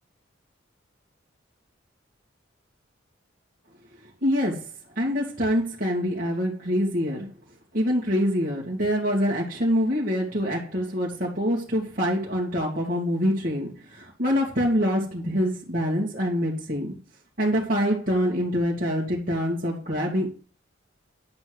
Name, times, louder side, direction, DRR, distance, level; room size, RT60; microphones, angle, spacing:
voice 1, 4.2-4.7 5.0-7.3 7.7-16.9 17.4-20.3, equal, 45° right, -5 dB, 2.2 m, -25 dB
10.5 x 4.4 x 7.9 m, 0.37 s
head